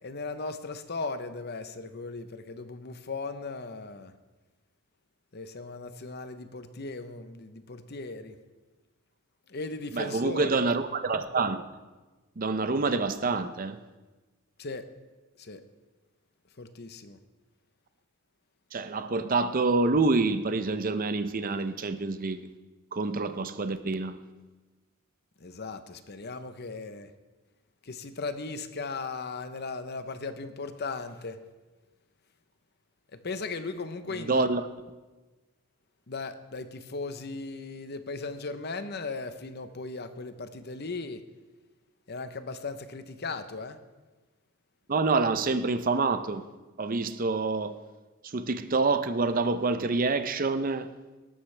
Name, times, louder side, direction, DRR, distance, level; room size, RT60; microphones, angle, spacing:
voice 1, 0.0-4.1 5.3-8.4 9.5-10.6 14.6-14.9 15.4-15.7 16.6-17.2 25.4-27.1 27.8-31.4 33.1-34.5 36.1-41.3 42.1-43.8, left 3 dB, 50° left, 0.8 m, -37 dB
voice 2, 9.9-11.6 12.4-13.8 18.7-22.5 22.9-24.2 34.2-34.6 44.9-46.4 46.8-47.8 48.2-50.9, right 3 dB, 40° right, 0.6 m, -27 dB
18.0 x 13.0 x 3.4 m
head